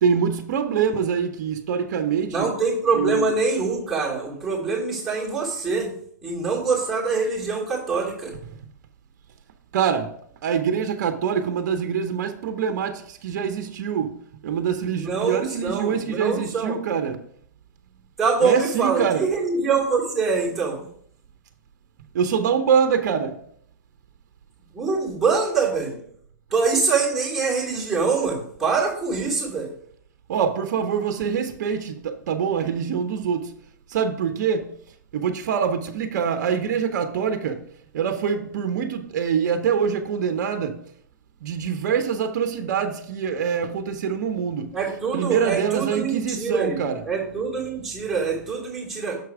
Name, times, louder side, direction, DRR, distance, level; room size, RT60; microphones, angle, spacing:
voice 1, 0.0-2.5 2.9-3.3 9.7-10.1 10.4-14.1 14.4-17.2 18.4-19.2 22.1-23.4 30.3-33.5 33.9-34.7 35.1-37.6 37.9-40.8 41.4-44.7 45.1-47.0, right 7 dB, 60° right, 0.8 m, -24 dB
voice 2, 2.3-5.9 6.2-8.3 14.9-16.8 18.2-20.8 24.7-26.0 26.5-29.7 44.7-49.2, right 4 dB, 5° right, 3.0 m, -24 dB
6.7 x 4.7 x 4.8 m
hypercardioid pair, 125°, 10 cm